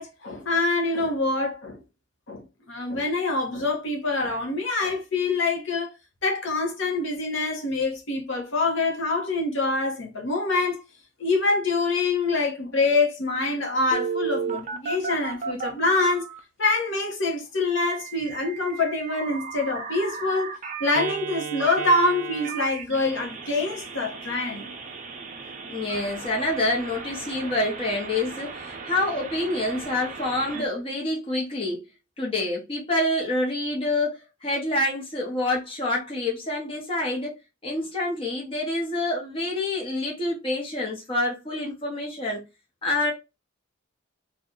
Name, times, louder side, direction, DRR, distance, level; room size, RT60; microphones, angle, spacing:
voice 1, 0.0-1.8 2.3-5.9 6.2-10.8 11.2-16.3 16.6-24.7, left 3 dB, 65° left, 0.9 m, -25 dB
Telephone, 13.9-16.4 17.8-30.6, right 5 dB, 40° right, 0.5 m, -35 dB
voice 2, 25.7-31.8 32.2-37.3 37.6-42.4 42.8-43.1, left 2 dB, 25° left, 0.8 m, -27 dB
2.7 x 2.3 x 3.7 m
head